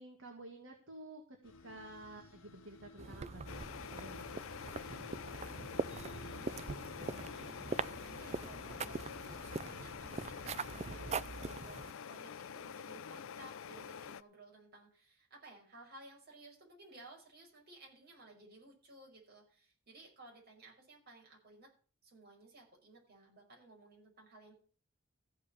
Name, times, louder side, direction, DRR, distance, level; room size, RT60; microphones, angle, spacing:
voice 1, 0.0-3.6 3.9-4.3, right 2 dB, 65° right, 3 dB, 1.9 m, -51 dB
sound 1, 1.4-11.6, left 4 dB, 85° left, 1.1 m, -57 dB
sound 2, 3.0-11.9, right 4 dB, 30° right, 0.5 m, -42 dB
sound 3, 3.5-14.2, left 7 dB, 70° left, 0.5 m, -47 dB
voice 2, 5.4-5.8 6.2-21.7 22.0-24.5, right 2 dB, 50° right, -1 dB, 5.4 m, -58 dB
14.5 x 5.5 x 8.3 m, 0.42 s
head